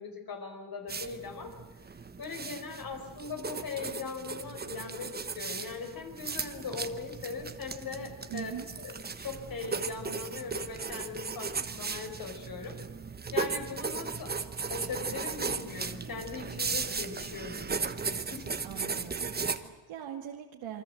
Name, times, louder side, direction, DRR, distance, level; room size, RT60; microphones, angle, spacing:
voice 1, 0.0-1.6 2.2-8.5 8.8-12.8 13.3-14.3 14.7-18.5, left 5 dB, 50° left, 4 dB, 4.9 m, -40 dB
sound 1, 0.9-19.6, right 4 dB, 20° right, 1.1 m, -36 dB
voice 2, 8.3-8.7 18.6-20.8, right 10 dB, 85° right, 1 dB, 2.2 m, -41 dB
28.5 x 24.0 x 7.9 m, 1.1 s
wide cardioid pair, 165°, 45 cm